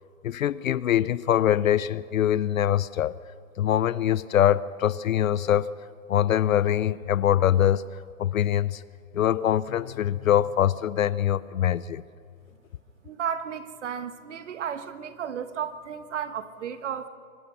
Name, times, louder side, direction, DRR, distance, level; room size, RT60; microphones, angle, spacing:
voice 1, 0.2-3.1 3.6-5.7 6.1-8.8 9.1-12.0, left 10 dB, 65° left, 18 dB, 0.6 m, -23 dB
sound 1, 9.7-12.3, left 11 dB, 30° left, 0.6 m, -48 dB
voice 2, 13.0-17.1, right 8 dB, 50° right, 11 dB, 1.3 m, -33 dB
24.0 x 20.5 x 5.6 m, 2.4 s
hypercardioid pair, 165°, 45 cm